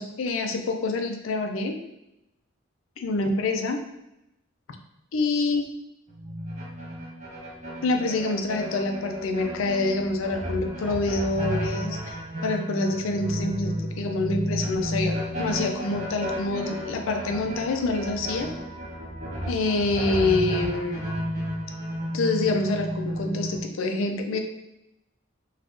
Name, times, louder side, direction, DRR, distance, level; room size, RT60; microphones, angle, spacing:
voice 1, 0.0-1.8 3.0-3.8 5.1-5.7 7.8-12.1 12.4-18.5 19.5-21.0 22.1-24.4, left 2 dB, 75° left, 5 dB, 0.4 m, -26 dB
sound 1, 6.1-23.6, equal, 35° right, 0.5 m, -32 dB
2.5 x 2.3 x 3.5 m, 0.87 s
head